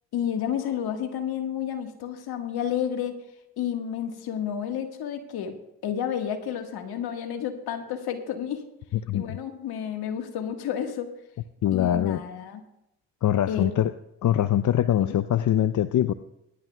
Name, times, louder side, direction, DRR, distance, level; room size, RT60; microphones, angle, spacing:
voice 1, 0.1-3.1 3.6-5.5 5.8-8.6 9.1-11.1 11.7-12.6 13.5-13.7 15.0-15.1, left 9 dB, 75° left, 5 dB, 1.7 m, -30 dB
voice 2, 11.6-12.2 13.2-13.9 14.2-16.1, left 11 dB, 50° left, 12 dB, 0.6 m, -23 dB
21.0 x 11.0 x 2.3 m, 0.85 s
hypercardioid pair, 45°, 39 cm